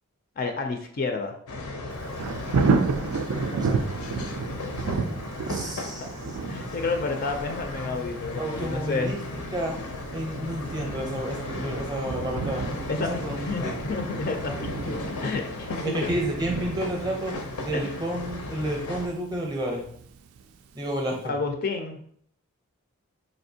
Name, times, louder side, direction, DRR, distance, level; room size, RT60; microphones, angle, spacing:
voice 1, 0.4-1.3 3.3-3.6 5.6-6.1 6.5-9.1 12.9-16.2 17.7-18.0 21.2-22.0, left 3 dB, 40° left, 4 dB, 0.4 m, -31 dB
sound 1, 1.5-19.1, left 2 dB, 80° left, 0.6 m, -36 dB
Thunder, 1.9-20.7 21.1-21.2, right 4 dB, 75° right, 0.3 m, -32 dB
voice 2, 5.5-6.0 8.4-9.2 9.5-9.8 10.1-13.8 15.8-17.3 17.6-19.8 20.7-21.3, right 1 dB, 15° right, 0 dB, 0.6 m, -30 dB
4.3 x 2.7 x 2.7 m, 0.62 s
head